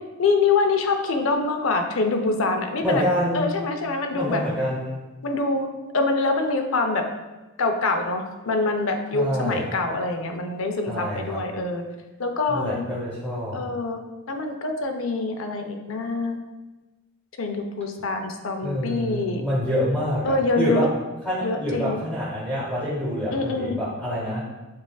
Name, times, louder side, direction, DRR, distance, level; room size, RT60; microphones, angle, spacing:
voice 1, 0.2-3.0 3.3-4.4 5.2-5.7 5.9-7.0 7.6-11.8 12.2-12.8 13.5-14.0 14.3-16.4 17.4-19.4 20.2-20.9 21.4-22.0 23.3-23.8, left 3 dB, 75° left, 5 dB, 0.5 m, -25 dB
voice 2, 2.8-3.4 4.1-5.0 9.1-9.7 10.9-11.4 12.5-13.6 18.6-20.9 21.2-24.4, equal, 5° right, -8 dB, 0.9 m, -27 dB
7.2 x 2.4 x 2.3 m, 1.1 s
head